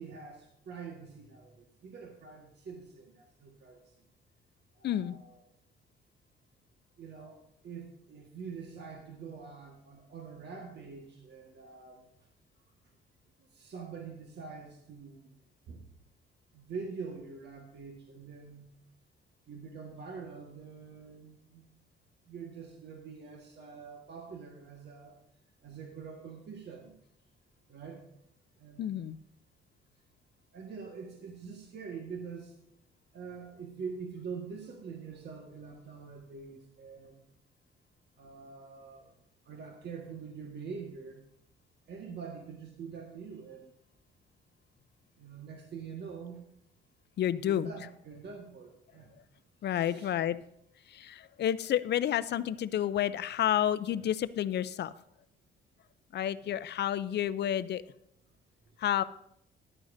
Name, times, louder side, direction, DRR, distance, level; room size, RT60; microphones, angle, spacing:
voice 1, 0.0-3.9 4.8-5.4 7.0-12.1 13.5-15.4 15.7-15.8 16.5-18.7 19.5-21.6 22.3-25.2 25.6-26.9 27.7-28.0 28.6-28.9 30.5-32.6 33.1-37.2 38.2-39.2 39.4-41.2 41.9-43.7 45.2-46.4 47.4-49.1 49.7-50.1 56.4-56.6, right 5 dB, 60° right, 1 dB, 1.6 m, -45 dB
voice 2, 4.8-5.2 28.8-29.2 47.2-47.7 49.6-50.4 50.9-54.9 56.1-57.8 58.8-59.0, left 11 dB, 60° left, 14 dB, 0.5 m, -30 dB
14.0 x 11.0 x 2.7 m, 0.75 s
cardioid pair, 90°, 20 cm